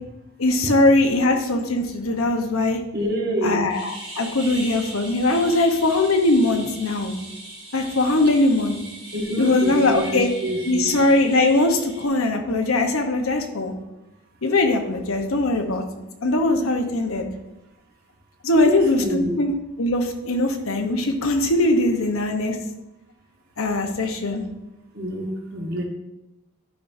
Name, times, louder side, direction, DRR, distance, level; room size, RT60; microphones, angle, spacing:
voice 1, 0.4-2.8 3.4-7.1 7.7-8.8 9.4-10.3 10.7-13.7 14.4-15.8 16.2-17.3 18.4-19.5 19.8-22.6 23.6-24.4, left 2 dB, 70° left, 4 dB, 1.0 m, -21 dB
voice 2, 2.9-3.7 9.1-11.0 18.5-19.4 24.9-25.8, equal, 45° right, 1 dB, 1.1 m, -26 dB
sound 1, 3.7-12.1, right 1 dB, 25° right, 1.9 m, -39 dB
11.5 x 5.3 x 2.7 m, 0.95 s
head